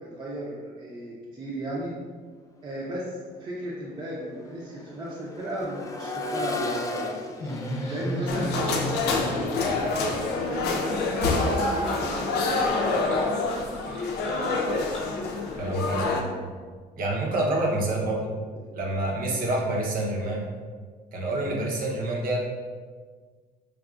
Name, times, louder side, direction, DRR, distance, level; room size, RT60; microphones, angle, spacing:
voice 1, 0.0-1.9 2.6-3.1 3.4-7.2 7.9-10.0 10.5-13.4, right 1 dB, 30° right, -6 dB, 0.6 m, -35 dB
Accelerating revving vroom, 2.7-2.9 3.3-13.2 14.9-15.0, left 2 dB, 20° left, 0.3 m, -38 dB
Laughter, 7.4-15.3, left 1 dB, 40° left, 0.8 m, -34 dB
sound 1, 8.3-16.2, left 3 dB, 80° left, 0.5 m, -27 dB
voice 2, 15.6-16.3 17.0-18.3 18.7-20.4 21.1-22.4, right 1 dB, 60° right, -2 dB, 0.8 m, -27 dB
4.7 x 2.4 x 2.4 m, 1.6 s
cardioid pair, 110°, 17 cm